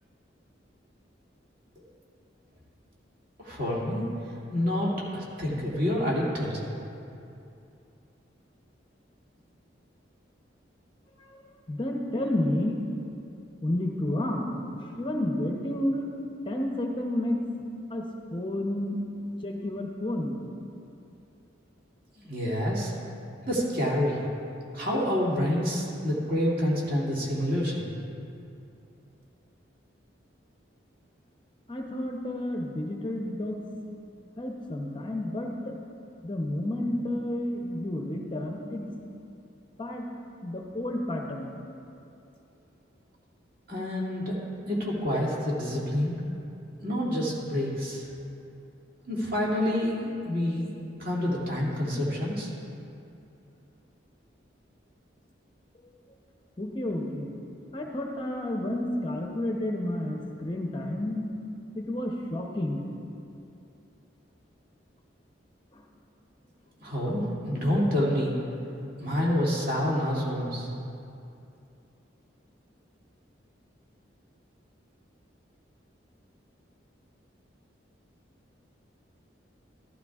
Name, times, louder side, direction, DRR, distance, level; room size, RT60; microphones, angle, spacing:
voice 1, 3.4-6.5 22.2-22.9 23.5-24.2 24.7-27.9 43.7-44.4 44.7-46.2 46.8-48.1 49.1-52.5 66.8-68.3 69.0-70.7, equal, 50° right, -6 dB, 2.4 m, -28 dB
voice 2, 11.7-12.8 13.6-14.5 14.8-16.1 16.5-17.4 17.9-19.0 19.4-20.4 31.7-33.6 34.4-35.8 36.2-38.9 39.8-40.1 40.4-41.6 56.6-57.3 57.7-61.3 61.7-62.9 65.7-65.8, left 1 dB, 25° left, 1 dB, 0.7 m, -31 dB
14.0 x 12.0 x 2.4 m, 2.7 s
head